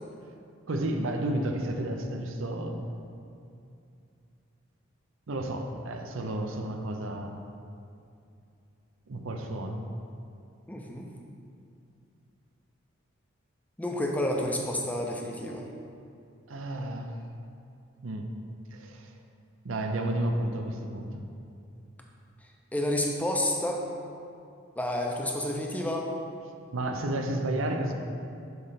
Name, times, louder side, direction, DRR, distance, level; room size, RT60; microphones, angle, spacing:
voice 1, 0.7-2.9 5.3-7.4 9.1-9.8 16.5-17.2 18.0-18.3 18.7-19.2 19.6-21.3 26.7-27.9, right 1 dB, 75° right, 4 dB, 0.6 m, -31 dB
voice 2, 10.7-11.1 13.8-15.6 22.7-23.8 24.8-26.1, left 1 dB, 5° left, 0 dB, 0.5 m, -29 dB
7.8 x 3.2 x 5.6 m, 2.5 s
head